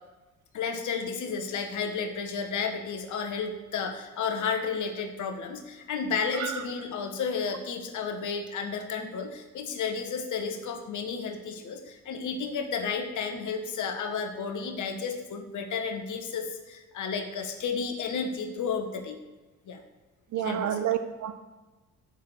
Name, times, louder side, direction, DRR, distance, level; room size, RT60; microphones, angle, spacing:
voice 1, 0.5-19.2 19.7-19.8 20.3-20.8, left 5 dB, 45° left, 6 dB, 1.3 m, -32 dB
voice 2, 20.3-21.3, right 9 dB, 45° right, 9 dB, 0.8 m, -29 dB
7.2 x 6.5 x 6.3 m, 1.2 s
figure-of-eight pair, 45°, 41 cm